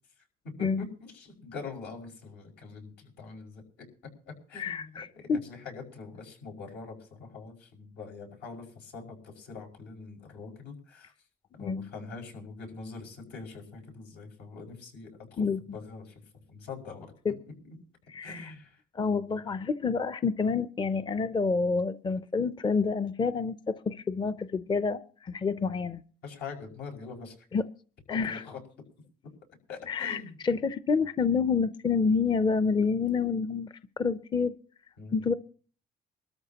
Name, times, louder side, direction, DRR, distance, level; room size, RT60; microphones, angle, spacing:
voice 1, 0.6-3.6 4.3-5.0 5.4-11.1 11.6-15.4 15.7-16.2 16.5-17.1 18.2-18.8 26.2-27.3 28.1-28.6 29.7-30.4 35.0-35.3, left 4 dB, 85° left, 0 dB, 5.6 m, -43 dB
voice 2, 4.6-5.4 11.6-11.8 15.4-15.6 17.2-17.3 18.1-18.5 18.9-26.0 27.5-27.6 28.1-28.4 29.9-34.5 35.1-35.3, left 5 dB, 25° left, 13 dB, 0.6 m, -28 dB
24.0 x 13.5 x 2.9 m, 0.42 s
cardioid pair, 110°, 17 cm